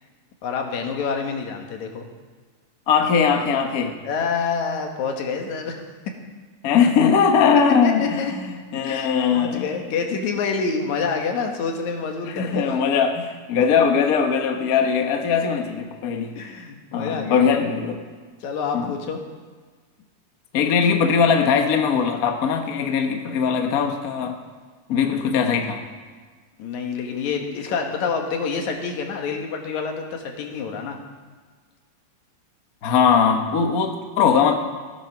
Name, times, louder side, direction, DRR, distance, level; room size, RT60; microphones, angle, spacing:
voice 1, 0.4-2.1 4.0-5.8 7.8-8.3 8.8-12.8 16.4-17.5 18.4-19.2 26.6-31.0, left 5 dB, 75° left, 3 dB, 2.7 m, -27 dB
voice 2, 2.9-3.9 6.6-9.7 12.3-16.3 16.9-18.0 18.7-19.0 20.5-24.4 24.9-25.8 32.8-34.6, left 6 dB, 60° left, 5 dB, 0.9 m, -20 dB
17.0 x 8.9 x 5.9 m, 1.4 s
omnidirectional pair, 3.3 m